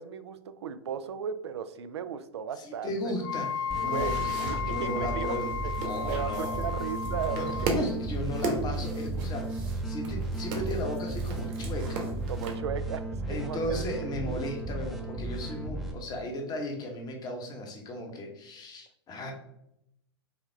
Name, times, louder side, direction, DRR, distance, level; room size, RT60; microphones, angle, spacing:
voice 1, 0.0-3.1 3.8-7.5 12.3-13.8 14.3-14.4, right 7 dB, 75° right, 12 dB, 0.4 m, -36 dB
voice 2, 2.6-6.7 7.3-12.0 13.3-19.3, left 1 dB, 30° left, 3 dB, 1.0 m, -36 dB
Wind instrument woodwind instrument, 3.2-7.7, left 6 dB, 50° left, 0.4 m, -34 dB
sound 1, 3.3-12.5, right 3 dB, 50° right, 1.1 m, -38 dB
sound 2, 3.7-15.9, right 2 dB, ahead, 0.7 m, -34 dB
5.6 x 2.3 x 3.3 m, 0.80 s
hypercardioid pair, 100°, 14 cm